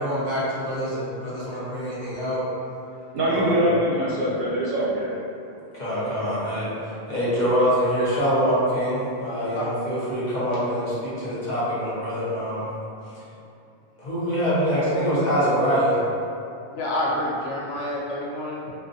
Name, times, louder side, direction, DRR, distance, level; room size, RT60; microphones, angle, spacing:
voice 1, 0.0-2.4 3.3-3.7 5.7-6.7 7.1-12.7 13.1-13.2 14.0-16.0, equal, 45° left, -10 dB, 0.8 m, -24 dB
voice 2, 3.1-5.2, right 1 dB, 65° right, -6 dB, 0.7 m, -23 dB
voice 3, 16.7-18.7, left 1 dB, 75° left, -6 dB, 0.8 m, -28 dB
2.4 x 2.3 x 2.5 m, 2.6 s
omnidirectional pair, 1.1 m